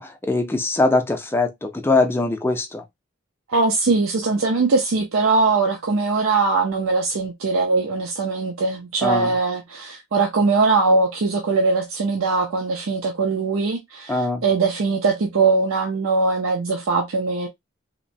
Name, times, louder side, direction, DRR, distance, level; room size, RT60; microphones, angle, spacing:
voice 1, 0.0-2.8 9.0-9.3 14.1-14.4, left 2 dB, 10° left, 0.4 m, -22 dB
voice 2, 3.5-17.5, right 3 dB, 75° right, 0.5 m, -21 dB
2.8 x 2.1 x 2.6 m
head